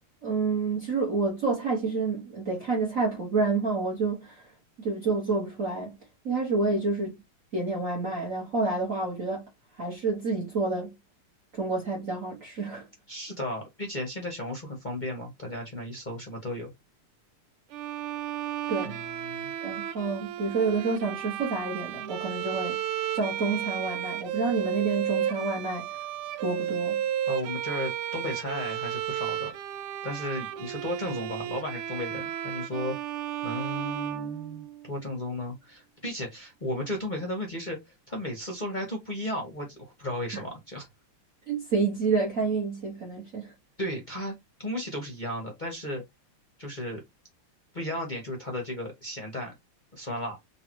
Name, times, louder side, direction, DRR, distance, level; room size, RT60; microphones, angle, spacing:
voice 1, 0.2-4.4 4.8-6.0 6.3-7.1 7.5-9.4 9.8-10.9 11.5-12.9 18.7-19.0 19.6-22.8 23.1-26.0 26.4-27.0 41.5-43.5, right 4 dB, 40° right, 1.6 m, -28 dB
voice 2, 13.1-16.7 18.8-19.5 27.3-29.5 30.0-33.0 33.4-37.8 38.1-40.9 43.8-46.0 46.6-47.0 47.7-49.5 49.9-50.4, left 1 dB, 30° left, 0.9 m, -34 dB
Bowed string instrument, 17.7-34.9, right 11 dB, 85° right, 1.5 m, -33 dB
3.9 x 3.3 x 3.0 m
omnidirectional pair, 2.4 m